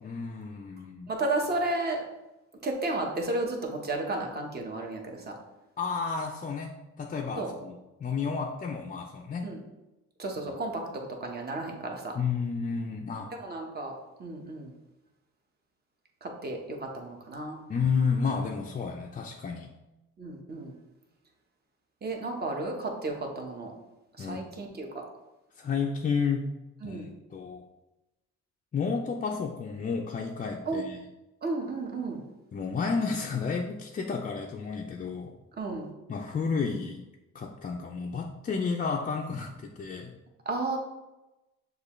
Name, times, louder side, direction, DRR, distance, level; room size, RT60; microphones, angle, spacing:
voice 1, 0.0-1.1 5.8-9.5 12.1-13.3 17.7-19.7 24.2-24.4 25.6-26.5 26.8-27.6 28.7-31.1 32.5-35.3 36.1-37.0 37.3-40.1, left 5 dB, 30° left, 0 dB, 0.4 m, -31 dB
voice 2, 1.1-2.0 2.6-5.3 7.4-7.5 9.4-9.6 10.2-12.1 13.4-13.9 14.2-14.7 16.2-17.6 20.2-20.7 22.0-23.7 24.2-24.9 26.8-27.1 30.7-30.8 31.4-32.2 35.6-35.9 40.5-40.8, right 2 dB, 35° right, 1 dB, 1.0 m, -33 dB
6.5 x 2.4 x 3.0 m, 1.0 s
cardioid pair, 90°, 30 cm